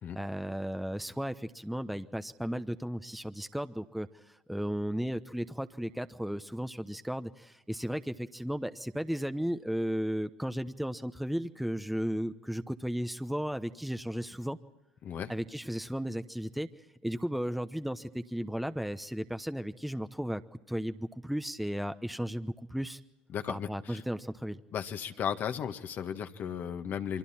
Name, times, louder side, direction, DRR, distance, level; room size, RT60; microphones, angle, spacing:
voice 1, 0.1-14.6 15.3-16.7 17.0-20.4 20.7-23.0 23.5-24.6, equal, ahead, 9 dB, 1.0 m, -35 dB
voice 2, 23.3-24.0 24.7-27.2, left 8 dB, 50° left, 7 dB, 1.6 m, -35 dB
29.5 x 23.5 x 4.4 m, 1.1 s
hypercardioid pair, 75°, 4 cm